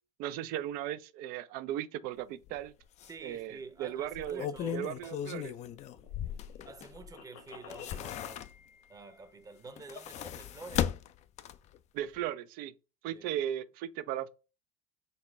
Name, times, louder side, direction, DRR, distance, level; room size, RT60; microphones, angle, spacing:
voice 1, 0.2-2.7 3.2-4.5 4.7-5.5 11.9-12.7 13.0-14.3, right 11 dB, 60° right, 0.4 m, -36 dB
sound 1, 2.5-2.6 3.0-3.1 4.0-7.1 7.5-8.8 9.7-11.8 12.1-12.2, left 10 dB, 40° left, 0.4 m, -37 dB
voice 2, 3.1-5.2 6.2-8.5 8.9-10.9 13.1-13.3, right 4 dB, 20° right, 0.8 m, -49 dB
sound 2, 5.3-8.1, left 6 dB, 70° left, 1.2 m, -53 dB
4.1 x 2.2 x 4.1 m
hypercardioid pair, 85°, 17 cm